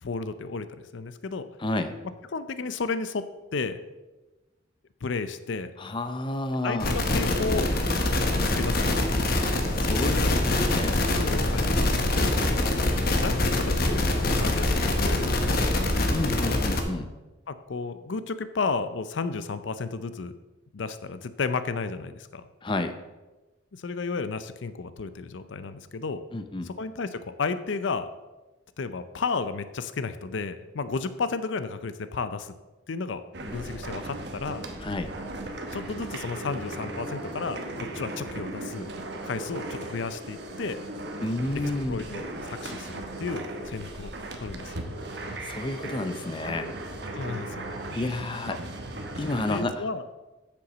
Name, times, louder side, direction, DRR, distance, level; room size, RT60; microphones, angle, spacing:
voice 1, 0.0-1.5 2.3-3.8 5.0-5.7 6.6-7.7 8.3-9.1 9.9-10.4 11.1-12.7 13.1-15.7 17.5-20.3 20.7-22.4 23.7-26.2 26.6-28.1 28.8-32.5 32.9-34.6 35.7-38.9 39.2-40.8 41.5-44.1 44.4-44.9 47.1-47.7 48.5-48.6 49.5-50.0, left 4 dB, 70° left, 12 dB, 0.5 m, -33 dB
voice 2, 1.6-1.9 5.8-6.9 9.8-10.9 16.1-17.1 22.6-22.9 26.3-26.7 34.8-35.1 41.2-42.0 45.4-46.7 47.9-48.6 49.2-49.8, left 2 dB, 25° left, 9 dB, 0.5 m, -30 dB
sound 1, 6.8-16.8, left 1 dB, 50° left, 1.2 m, -24 dB
sound 2, 33.3-49.6, right 1 dB, 55° right, 1.1 m, -37 dB
7.9 x 6.9 x 6.1 m, 1.1 s
head